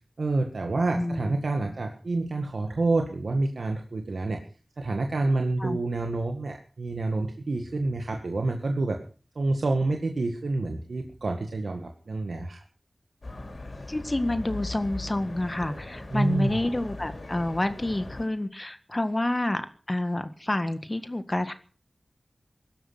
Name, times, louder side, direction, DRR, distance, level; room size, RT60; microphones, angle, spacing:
voice 1, 0.2-4.4 4.8-9.0 9.4-12.6 16.1-16.6, right 2 dB, 90° right, 3 dB, 1.8 m, -28 dB
voice 2, 1.0-1.3 1.6-1.7 5.6-5.8 13.9-21.5, left 1 dB, 35° left, 10 dB, 1.6 m, -29 dB
sound 1, 13.2-18.3, left 2 dB, 65° left, 5.1 m, -39 dB
16.5 x 12.5 x 6.0 m, 0.38 s
wide cardioid pair, 45°, 0 cm